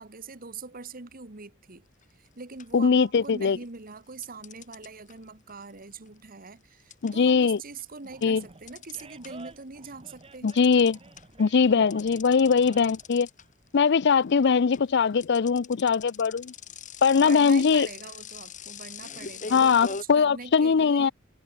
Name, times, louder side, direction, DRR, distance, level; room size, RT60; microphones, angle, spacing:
voice 1, 0.0-1.9 2.2-10.5 17.2-21.1, right 4 dB, 45° right, 1.6 m, -43 dB
sound 1, 2.0-2.3 2.6-3.5 4.2-9.6 9.9-20.0, left 6 dB, 40° left, 2.1 m, -42 dB
voice 2, 2.7-3.6 7.0-7.6 8.2-8.4 10.4-11.0 11.4-13.3 13.7-16.5 17.0-17.9 19.5-21.1, left 5 dB, 55° left, 0.5 m, -21 dB
Animal, 8.1-13.1, right 3 dB, 30° right, 1.6 m, -50 dB
head